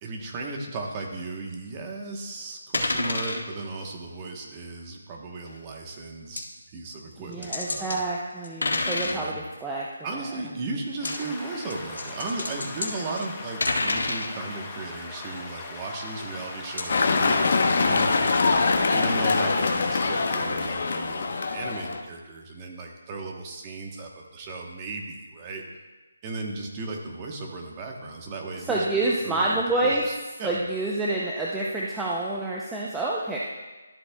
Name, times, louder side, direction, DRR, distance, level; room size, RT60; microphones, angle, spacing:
voice 1, 0.0-6.4 6.7-8.0 9.0-9.4 10.0-18.3 18.9-25.8 26.2-30.6, right 3 dB, 20° right, 1 dB, 1.0 m, -36 dB
sound 1, 2.7-3.4 5.5-5.6 6.4-6.5 7.3-8.0 8.4-9.2 10.9-11.2 11.7-14.3 16.8-16.9, left 2 dB, 85° left, 1.9 m, -28 dB
voice 2, 7.2-9.9 11.2-11.3 28.7-30.1 30.4-33.4, right 2 dB, 5° right, -5 dB, 0.6 m, -28 dB
sound 2, 11.0-20.5, left 3 dB, 15° left, 0.9 m, -40 dB
sound 3, 16.9-22.0, left 4 dB, 50° left, 0.9 m, -23 dB
13.0 x 8.0 x 2.3 m, 1.2 s
hypercardioid pair, 165°, 0 cm